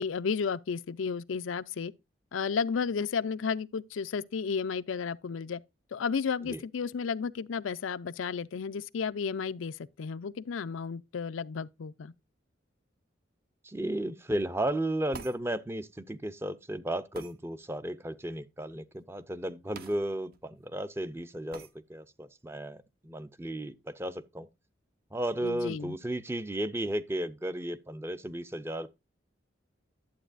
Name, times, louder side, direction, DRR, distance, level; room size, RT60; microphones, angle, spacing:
voice 1, 0.0-1.9 2.3-5.6 5.9-12.1 25.4-25.9, left 5 dB, 90° left, 0.5 m, -33 dB
voice 2, 13.6-24.5 25.1-28.9, right 1 dB, 15° right, 0.5 m, -34 dB
sound 1, 15.1-15.4 17.1-17.4 19.7-20.0 20.3-20.4 21.5-21.7, right 4 dB, 50° right, 0.7 m, -44 dB
11.0 x 7.9 x 2.5 m
head